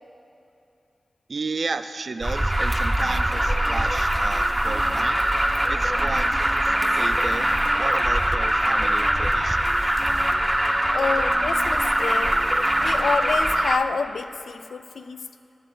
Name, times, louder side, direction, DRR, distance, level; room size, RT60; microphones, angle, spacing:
voice 1, 1.3-5.2 5.7-7.5 7.8-9.9, right 4 dB, 65° right, 11 dB, 0.4 m, -33 dB
Alarm, 2.2-13.8, right 1 dB, 15° right, 0.5 m, -22 dB
sound 1, 3.0-13.7, left 1 dB, 45° left, 0.6 m, -37 dB
voice 2, 10.9-12.4 12.8-15.2, left 5 dB, 90° left, 10 dB, 0.3 m, -28 dB
13.0 x 7.4 x 3.8 m, 2.6 s
cardioid pair, 50°, 0 cm